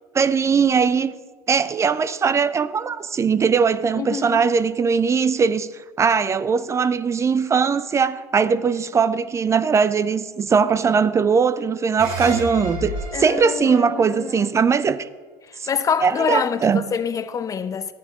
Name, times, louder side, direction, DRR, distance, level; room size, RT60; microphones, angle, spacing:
voice 1, 0.1-1.1 1.5-15.1 15.6-15.7 16.0-16.9, right 6 dB, 30° right, 0.5 m, -20 dB
voice 2, 4.0-4.4 13.1-14.5 15.5-17.9, left 6 dB, 35° left, 0.7 m, -26 dB
sound 1, 12.0-15.3, equal, 70° right, 2.9 m, -32 dB
12.0 x 9.2 x 3.7 m
hypercardioid pair, 65°, 10 cm